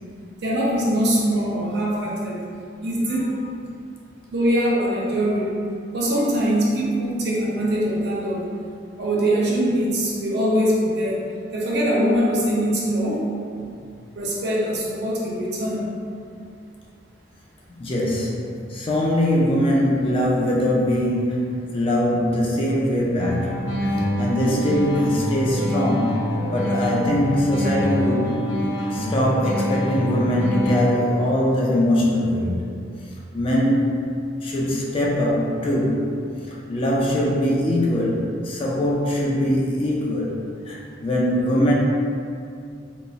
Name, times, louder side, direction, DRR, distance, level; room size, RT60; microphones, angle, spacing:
voice 1, 0.4-2.4 2.8-3.4 4.3-5.5 5.9-8.4 9.0-11.2 11.5-13.2 14.2-15.9, equal, 60° right, -4 dB, 0.6 m, -22 dB
voice 2, 17.7-23.6 24.2-28.4 28.9-32.8 33.3-34.1 34.4-36.1 36.5-41.7, left 1 dB, 30° left, -4 dB, 0.4 m, -22 dB
sound 1, 23.2-31.2, equal, 75° left, 1.3 m, -25 dB
3.8 x 2.0 x 2.4 m, 2.4 s
head